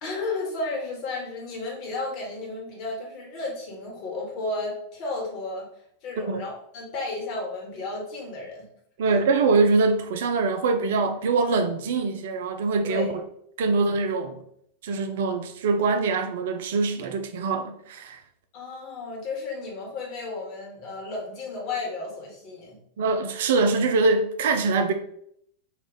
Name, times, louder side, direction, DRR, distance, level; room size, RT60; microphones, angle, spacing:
voice 1, 0.0-5.7 6.0-8.6 9.0-9.3 12.8-13.1 18.5-22.8, left 3 dB, 40° left, 1.3 m, -33 dB
voice 2, 9.0-13.1 13.6-14.4 14.8-18.2 23.0-24.9, right 4 dB, 55° right, 0.4 m, -23 dB
3.1 x 2.4 x 3.9 m
figure-of-eight pair, 90°, 0 cm